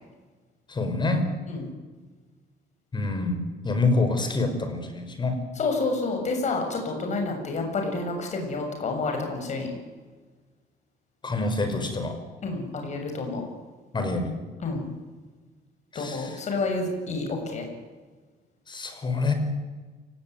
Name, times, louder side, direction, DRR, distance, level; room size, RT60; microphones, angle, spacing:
voice 1, 0.7-1.3 2.9-5.4 11.2-12.2 13.9-14.3 15.9-16.4 18.7-19.3, left 3 dB, 25° left, 7 dB, 5.7 m, -26 dB
voice 2, 5.6-9.7 12.4-13.4 14.6-14.8 16.0-17.6, left 3 dB, 45° left, 3 dB, 7.1 m, -29 dB
29.0 x 19.0 x 9.5 m, 1.4 s
cardioid pair, 110°, 17 cm